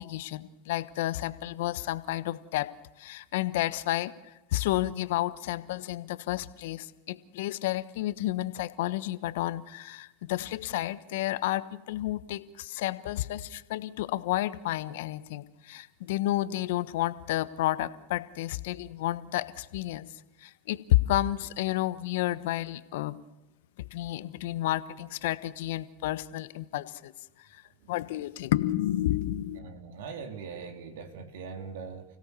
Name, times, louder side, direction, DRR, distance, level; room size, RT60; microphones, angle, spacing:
voice 1, 0.0-2.7 3.0-4.1 4.5-20.1 20.4-23.2 23.8-27.1 27.5-27.6 27.9-29.6, left 15 dB, 70° left, 14 dB, 1.1 m, -31 dB
voice 2, 29.5-32.0, right 5 dB, 75° right, 5 dB, 3.2 m, -41 dB
30.0 x 17.0 x 6.9 m, 1.0 s
hypercardioid pair, 95°, 0 cm